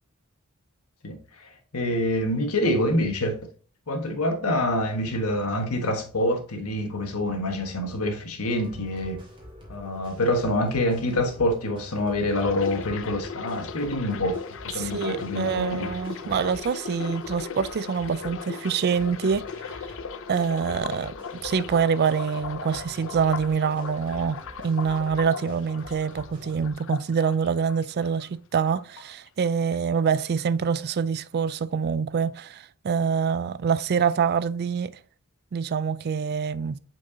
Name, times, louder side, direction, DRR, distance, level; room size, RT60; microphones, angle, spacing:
voice 1, 1.0-3.5 3.9-9.2 9.7-14.4 14.7-15.9, left 1 dB, 90° left, 1.4 m, -26 dB
sound 1, 8.5-26.7, left 1 dB, 25° right, 2.4 m, -47 dB
sound 2, 12.3-28.3 28.5-29.5 29.7-30.1, left 6 dB, 65° left, 0.5 m, -38 dB
voice 2, 14.8-19.4 20.3-21.2 21.4-34.9 35.5-36.8, right 6 dB, 45° right, 0.4 m, -25 dB
7.5 x 4.6 x 2.8 m
head